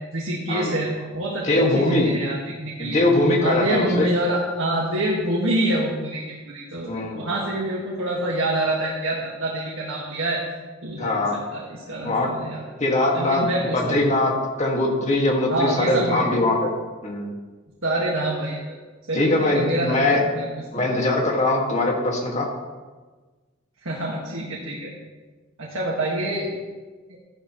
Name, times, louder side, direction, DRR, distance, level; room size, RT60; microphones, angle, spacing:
voice 1, 0.1-3.0 3.4-10.4 10.8-11.3 11.5-12.6 13.1-14.0 15.5-16.3 17.8-18.8 19.1-20.5 20.7-20.8 23.8-24.9 25.6-26.5, right 1 dB, 80° right, -3 dB, 1.8 m, -26 dB
voice 2, 1.4-2.1 2.8-4.1 6.9-7.3 11.0-11.4 12.0-12.3 12.8-13.5 13.7-14.3 14.6-16.7 17.0-17.3 19.1-20.2 20.7-22.5, left 2 dB, 35° left, -1 dB, 2.0 m, -21 dB
13.5 x 11.0 x 3.1 m, 1.3 s
head